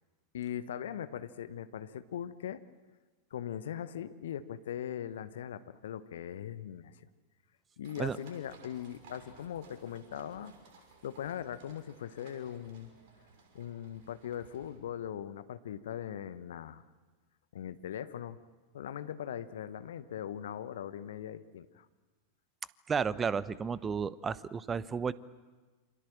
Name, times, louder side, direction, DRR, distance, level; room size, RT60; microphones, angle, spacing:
voice 1, 0.3-2.6 3.3-7.1 7.8-10.5 11.0-12.9 13.5-16.8 17.5-18.4 18.7-21.9, left 9 dB, 60° left, 13 dB, 1.1 m, -40 dB
sound 1, 7.8-14.8, right 4 dB, 50° right, 6.3 m, -58 dB
voice 2, 22.9-25.1, right 6 dB, 20° right, 18 dB, 0.9 m, -32 dB
28.0 x 26.0 x 7.7 m, 1.3 s
figure-of-eight pair, 90°, 0 cm